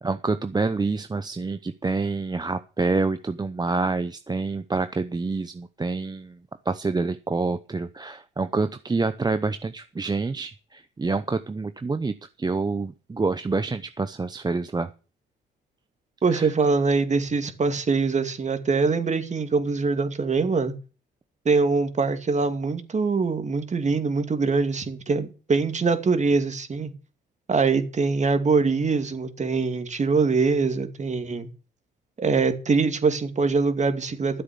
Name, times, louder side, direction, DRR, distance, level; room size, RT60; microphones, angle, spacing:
voice 1, 0.0-6.4 6.7-14.9 16.3-16.5, right 3 dB, 20° right, 0.8 m, -27 dB
voice 2, 16.2-20.7 21.4-26.9 27.5-31.5 32.2-34.4, right 4 dB, 35° right, 2.4 m, -23 dB
13.0 x 7.9 x 7.0 m
cardioid pair, 90°, 20 cm